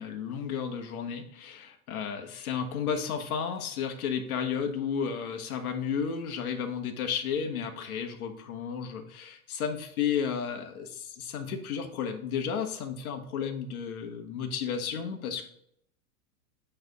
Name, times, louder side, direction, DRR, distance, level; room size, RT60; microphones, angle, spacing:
voice 1, 0.0-15.5, left 7 dB, 80° left, 4 dB, 1.3 m, -33 dB
8.9 x 3.4 x 4.0 m, 0.69 s
supercardioid pair, 165°, 43 cm